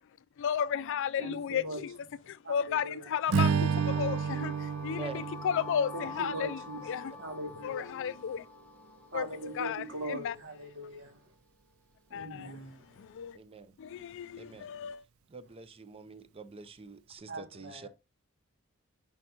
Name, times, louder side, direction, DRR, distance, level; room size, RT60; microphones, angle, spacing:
voice 1, 0.4-2.0 2.3-7.2 7.6-8.5 9.1-10.4 12.1-12.6 13.0-13.4 13.8-15.0, left 8 dB, 60° left, 0.3 m, -34 dB
voice 2, 1.2-1.8 2.4-3.0 5.9-6.8 7.2-7.9 9.1-11.2 12.1-13.0 17.3-17.9, right 1 dB, 65° right, 2.1 m, -41 dB
sound 1, 3.3-11.2, left 4 dB, 5° left, 1.0 m, -48 dB
Strum, 3.3-7.7, right 6 dB, 90° right, 0.5 m, -32 dB
voice 3, 5.0-5.3 7.2-7.3 13.3-13.8 14.4-14.7 15.3-17.9, right 3 dB, 25° right, 0.6 m, -46 dB
10.5 x 3.5 x 2.8 m
head